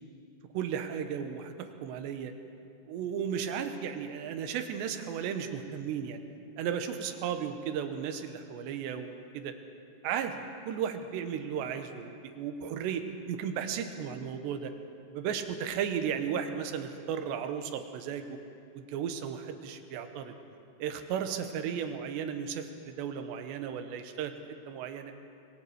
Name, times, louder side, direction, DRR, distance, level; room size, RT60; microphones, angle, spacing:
voice 1, 0.5-2.3 2.9-6.2 6.6-9.5 10.0-14.7 15.1-18.4 18.7-20.3 20.8-24.3 24.7-25.1, right 8 dB, 85° right, 7 dB, 3.3 m, -35 dB
26.0 x 22.0 x 4.9 m, 2.5 s
omnidirectional pair, 4.9 m